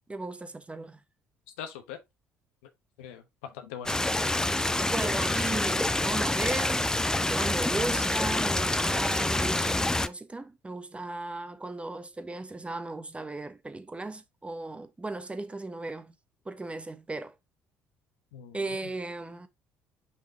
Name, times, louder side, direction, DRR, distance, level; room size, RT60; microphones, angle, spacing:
voice 1, 0.1-1.0 4.8-6.9 7.3-16.1 16.5-17.3 18.5-19.5, right 2 dB, 15° right, 1.1 m, -36 dB
voice 2, 1.6-2.0 3.0-4.0 18.3-18.6, left 8 dB, 75° left, 1.0 m, -41 dB
Stream, 3.9-10.1, left 1 dB, 10° left, 0.6 m, -27 dB
5.6 x 5.0 x 3.5 m
hypercardioid pair, 55°, 7 cm